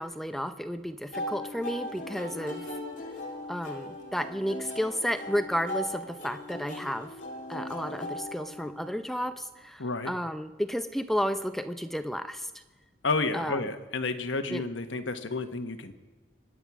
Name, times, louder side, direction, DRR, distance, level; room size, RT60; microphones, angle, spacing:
voice 1, 0.0-2.6 3.5-7.1 7.5-12.5 13.3-13.7 14.5-14.6, equal, ahead, 10 dB, 0.6 m, -32 dB
sound 1, 1.1-9.1, left 1 dB, 40° left, 2.6 m, -39 dB
voice 2, 9.8-10.1 13.0-15.9, left 3 dB, 85° left, 7 dB, 1.3 m, -31 dB
24.5 x 9.6 x 6.0 m, 1.3 s
head